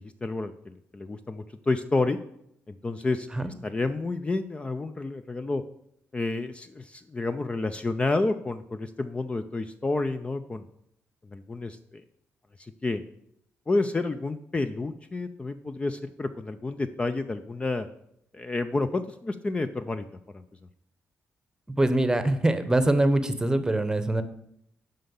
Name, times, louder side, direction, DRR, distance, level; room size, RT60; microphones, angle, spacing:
voice 1, 0.0-2.2 2.7-3.3 3.6-5.6 6.1-10.7 11.3-12.0 12.6-13.0 13.7-17.9 18.3-20.0 20.3-20.4, left 3 dB, 25° left, 9 dB, 0.5 m, -30 dB
voice 2, 21.8-24.2, right 1 dB, 15° right, 11 dB, 0.9 m, -23 dB
7.5 x 5.4 x 7.1 m, 0.75 s
cardioid pair, 90°, 5 cm